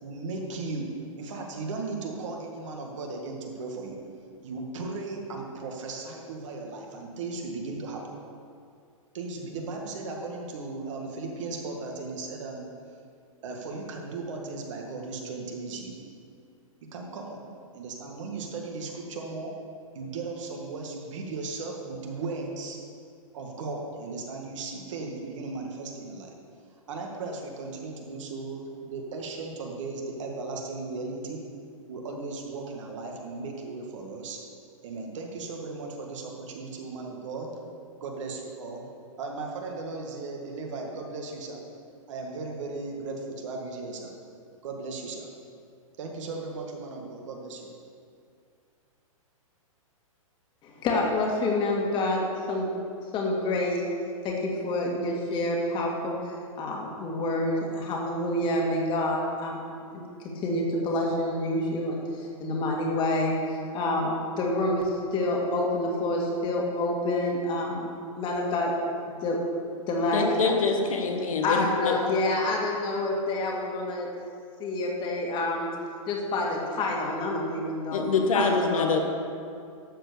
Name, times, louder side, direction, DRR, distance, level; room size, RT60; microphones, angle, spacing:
voice 1, 0.0-0.9 1.2-4.0 4.4-8.2 9.1-12.7 13.4-16.0 16.8-17.4 17.7-19.5 19.9-22.8 23.3-26.3 26.9-31.4 31.9-34.4 34.8-37.5 38.0-38.9 39.2-41.6 42.1-44.1 44.6-45.3 46.0-47.7, right 3 dB, 60° right, 1 dB, 1.9 m, -36 dB
voice 2, 50.6-52.7 53.1-53.8 54.2-67.9 68.2-68.8 69.2-69.5 69.9-70.5 71.4-74.1 74.6-75.7 76.1-78.1 78.3-79.0, left 2 dB, 25° left, -1 dB, 2.1 m, -28 dB
voice 3, 70.1-72.0 77.9-79.0, left 4 dB, 75° left, 3 dB, 1.4 m, -25 dB
12.5 x 4.6 x 6.9 m, 2.4 s
hypercardioid pair, 130°, 18 cm